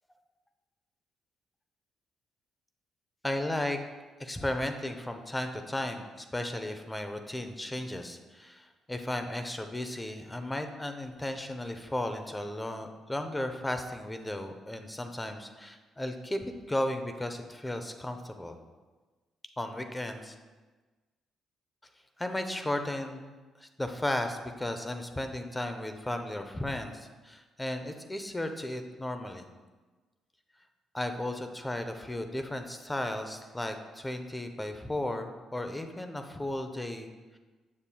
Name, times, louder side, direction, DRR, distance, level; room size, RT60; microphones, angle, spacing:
voice 1, 3.2-3.8 4.2-18.6 19.6-20.3 22.2-23.3 23.6-29.5 30.9-37.4, left 1 dB, 10° left, 7 dB, 0.6 m, -35 dB
7.4 x 6.6 x 2.2 m, 1.3 s
cardioid pair, 90°, 0 cm